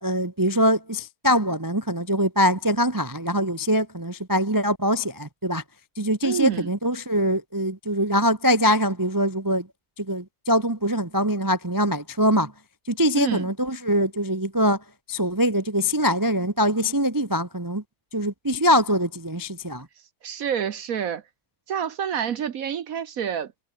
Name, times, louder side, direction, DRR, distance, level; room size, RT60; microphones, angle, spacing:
voice 1, 0.0-5.6 6.0-9.7 10.0-12.5 12.9-14.8 15.1-17.8 18.1-19.9, equal, 25° right, 0.4 m, -23 dB
voice 2, 6.2-6.7 13.1-13.5 20.2-21.2 21.7-23.5, right 8 dB, 55° right, 1.0 m, -27 dB
omnidirectional pair, 2.4 m